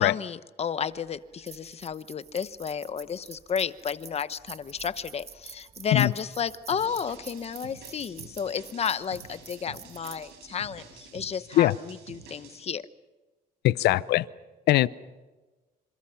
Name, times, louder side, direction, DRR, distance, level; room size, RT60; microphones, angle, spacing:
voice 1, 0.0-11.7 12.1-12.8, left 7 dB, 40° left, 14 dB, 0.9 m, -32 dB
sound 1, 0.9-11.4, right 6 dB, 40° right, 1.8 m, -49 dB
sound 2, 6.7-12.6, right 6 dB, 90° right, 6.7 m, -49 dB
voice 2, 13.6-14.3 14.7-14.9, left 15 dB, 80° left, 18 dB, 0.8 m, -21 dB
28.0 x 27.0 x 5.8 m, 1.2 s
cardioid pair, 110°, 17 cm